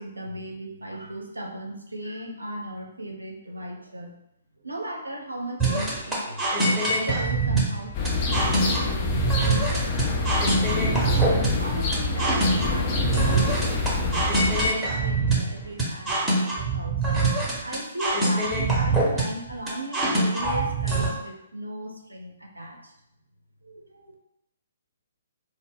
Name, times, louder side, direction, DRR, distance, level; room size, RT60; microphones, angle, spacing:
voice 1, 0.0-4.1 4.6-10.1 11.0-14.5 14.9-17.2 17.6-22.9 23.6-24.1, right 1 dB, 80° right, 1 dB, 0.5 m, -37 dB
sound 1, 5.6-21.1, right 2 dB, 5° right, 0.8 m, -24 dB
sound 2, 7.9-14.7, left 3 dB, 30° left, 0.4 m, -26 dB
2.2 x 2.1 x 3.5 m, 0.82 s
figure-of-eight pair, 125°, 0 cm